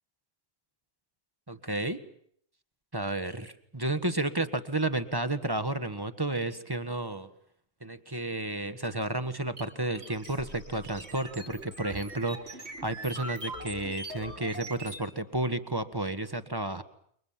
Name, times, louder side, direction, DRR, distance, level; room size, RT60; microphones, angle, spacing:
voice 1, 1.5-2.0 2.9-7.3 7.8-16.8, right 2 dB, 20° right, 10 dB, 1.5 m, -32 dB
sound 1, 9.6-15.1, right 1 dB, 70° right, 3.3 m, -42 dB
29.0 x 24.0 x 7.5 m, 0.66 s
omnidirectional pair, 1.1 m